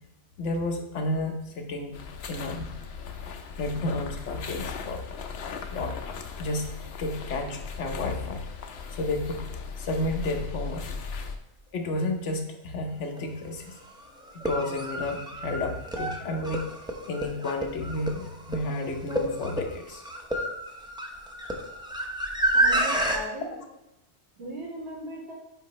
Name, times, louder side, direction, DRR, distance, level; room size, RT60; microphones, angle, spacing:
voice 1, 0.4-2.0 2.3-2.7 3.6-5.0 5.7-6.0 6.4-6.7 7.0-8.4 8.9-9.5 9.8-10.9 11.7-13.7 14.3-16.7 17.1-20.0 23.5-23.6, left 2 dB, 80° left, 4 dB, 1.2 m, -31 dB
sound 1, 1.9-11.4, left 5 dB, 65° left, 0.9 m, -38 dB
sound 2, 13.2-13.3 14.3-23.2, right 1 dB, 5° right, 0.6 m, -29 dB
voice 2, 22.5-23.5 24.4-25.3, right 1 dB, 70° right, -3 dB, 2.0 m, -37 dB
8.0 x 5.1 x 3.1 m, 0.88 s
omnidirectional pair, 1.2 m